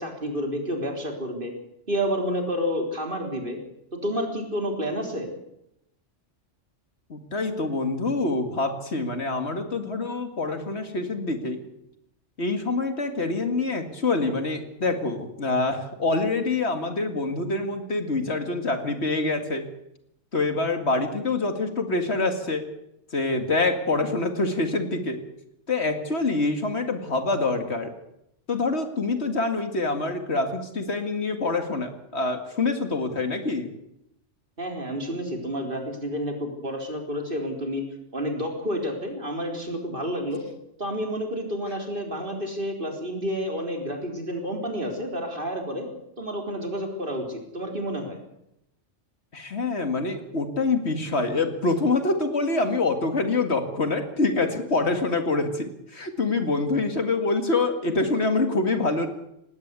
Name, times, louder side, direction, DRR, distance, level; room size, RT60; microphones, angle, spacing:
voice 1, 0.0-1.5 1.9-3.6 4.0-5.3 34.6-37.8 38.1-40.4 40.8-45.9 46.2-48.2, equal, 45° right, 3 dB, 4.2 m, -30 dB
voice 2, 7.1-11.6 12.4-19.6 20.3-22.6 23.1-25.2 25.7-27.9 28.5-33.7 49.3-59.1, left 3 dB, 60° left, 7 dB, 2.3 m, -26 dB
19.5 x 17.5 x 8.2 m, 0.81 s
omnidirectional pair, 1.3 m